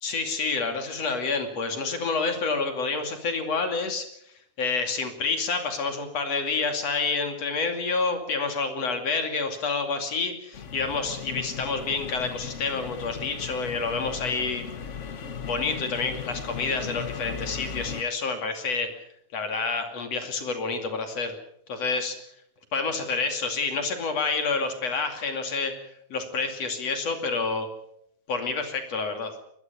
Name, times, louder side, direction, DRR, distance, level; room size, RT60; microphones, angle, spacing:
voice 1, 0.0-4.1 4.6-14.6 15.4-18.9 19.3-21.4 21.7-22.2 22.7-25.7 26.1-27.7 28.3-29.3, left 4 dB, 60° left, 5 dB, 3.7 m, -28 dB
sound 1, 10.5-18.0, left 6 dB, 80° left, 0.6 m, -37 dB
23.0 x 20.0 x 7.1 m, 0.73 s
omnidirectional pair, 3.4 m